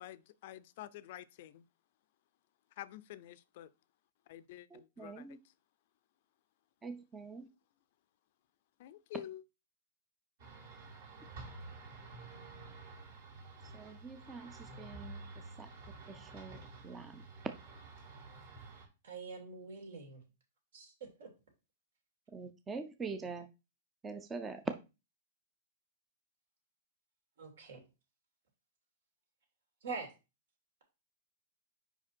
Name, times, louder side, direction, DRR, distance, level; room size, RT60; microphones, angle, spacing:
voice 1, 0.0-1.6 2.8-3.7 4.3-5.3 8.8-9.4, left 13 dB, 50° left, 0.4 m, -48 dB
voice 2, 4.7-5.4 6.8-7.5 13.7-15.3 15.6-15.7 16.1-16.6 16.8-17.2 22.3-23.5 24.0-24.6, right 4 dB, 15° right, 0.4 m, -45 dB
sound 1, 10.4-18.9, right 3 dB, 55° right, 2.3 m, -50 dB
voice 3, 19.0-20.2 20.7-21.3 27.4-27.8 29.8-30.1, right 4 dB, 75° right, 2.9 m, -44 dB
5.1 x 4.9 x 4.4 m
supercardioid pair, 160°, 0 cm